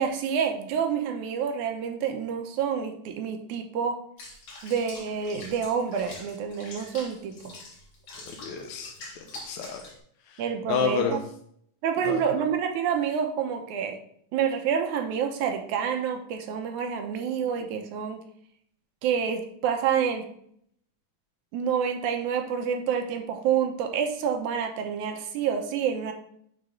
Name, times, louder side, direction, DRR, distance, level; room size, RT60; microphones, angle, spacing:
voice 1, 0.0-4.0 4.6-7.4 10.4-11.2 11.8-14.0 14.3-18.2 19.0-20.3 21.5-26.1, right 7 dB, 75° right, 5 dB, 2.2 m, -28 dB
Water / Bathtub (filling or washing), 4.2-10.0, left 2 dB, 60° left, 2.8 m, -44 dB
voice 2, 8.3-9.8 10.3-10.4 10.7-11.2 12.1-12.2, left 6 dB, 75° left, 3 dB, 1.9 m, -30 dB
7.0 x 3.9 x 5.1 m, 0.66 s
omnidirectional pair, 3.6 m